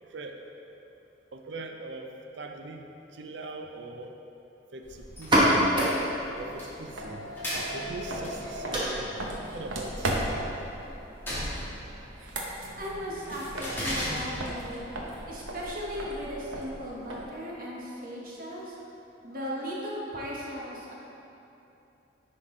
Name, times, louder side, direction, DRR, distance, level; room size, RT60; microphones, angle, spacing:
voice 1, 0.1-0.4 1.3-2.9 3.1-4.1 4.7-5.8 6.4-7.3 7.7-9.2 9.5-10.4, right 2 dB, 65° right, 4 dB, 0.5 m, -41 dB
sound 1, 4.8-17.2, equal, 10° left, 1.6 m, -39 dB
sound 2, 5.1-12.6, equal, 25° right, 1.1 m, -30 dB
sound 3, 7.0-7.1 7.5-10.5 12.0-14.1 14.4-17.4, right 1 dB, 85° right, 0.9 m, -36 dB
voice 2, 12.8-14.9 15.3-18.8 19.2-20.9, equal, 45° right, -4 dB, 1.1 m, -37 dB
10.0 x 3.8 x 3.7 m, 2.9 s
head